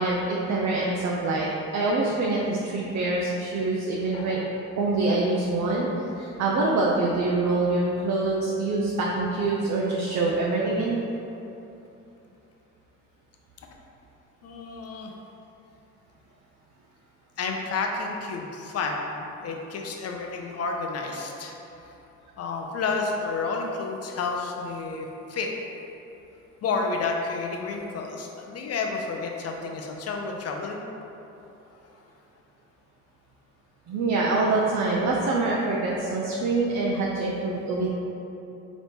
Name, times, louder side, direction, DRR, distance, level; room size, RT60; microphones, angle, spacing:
voice 1, 0.0-4.4 4.8-5.9 6.1-11.0 33.9-37.9, right 3 dB, 65° right, -3 dB, 0.5 m, -25 dB
voice 2, 14.4-15.1 17.4-21.6 21.8-21.9 22.4-25.5 26.6-30.8, left 4 dB, 55° left, 2 dB, 0.6 m, -30 dB
4.0 x 3.0 x 3.4 m, 2.9 s
cardioid pair, 90°, 30 cm